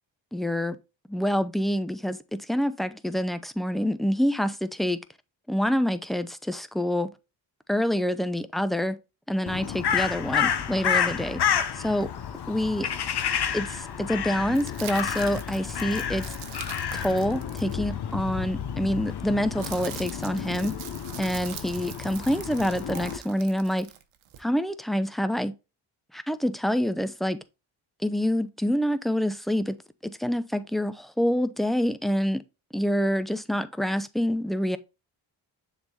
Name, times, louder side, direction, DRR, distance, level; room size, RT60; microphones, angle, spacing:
voice 1, 0.3-0.8 1.1-5.0 5.5-7.1 7.7-9.0 9.3-11.4 11.7-12.1 12.5-12.9 13.5-16.3 16.9-20.7 21.2-23.9 24.4-25.5 26.1-27.4 28.0-29.7 30.0-32.4 32.7-34.8, equal, ahead, 0.7 m, -26 dB
Crow, 9.5-23.2, left 8 dB, 55° left, 1.0 m, -30 dB
sound 1, 14.5-18.3 19.2-24.4, right 11 dB, 80° right, 1.0 m, -43 dB
6.9 x 4.1 x 3.9 m
supercardioid pair, 60°, 47 cm